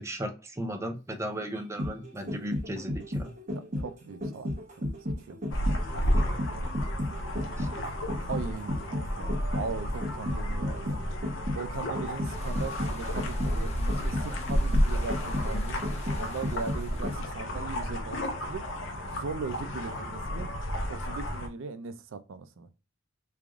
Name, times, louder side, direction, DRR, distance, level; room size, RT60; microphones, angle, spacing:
voice 1, 0.0-3.3 6.3-6.4 7.6-7.7, equal, 15° right, 0.6 m, -36 dB
sound 1, 1.5-17.4 17.8-17.9, left 1 dB, 40° right, 0.8 m, -34 dB
voice 2, 3.5-4.5 4.8-4.9 5.3-5.4 5.9-6.6 8.3-11.1 11.5-20.5 20.9-22.7, right 4 dB, 80° right, 0.4 m, -39 dB
sound 2, 5.5-21.5, equal, 70° left, 0.7 m, -31 dB
sound 3, 12.2-17.3, left 3 dB, 35° left, 0.7 m, -49 dB
3.3 x 2.5 x 3.5 m
head